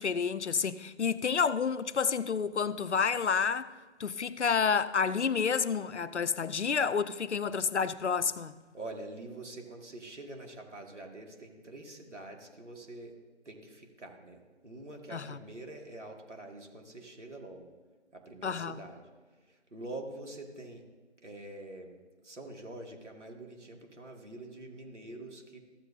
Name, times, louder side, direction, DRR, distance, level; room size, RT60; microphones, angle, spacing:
voice 1, 0.0-3.7 4.0-8.5 15.1-15.4 18.4-18.8, left 6 dB, 70° left, 0.6 m, -29 dB
voice 2, 8.7-13.2 13.5-17.7 18.1-19.0 19.4-20.8 21.2-21.9 22.2-25.6, right 2 dB, 75° right, 2.3 m, -45 dB
14.5 x 7.7 x 2.8 m
figure-of-eight pair, 165°, 36 cm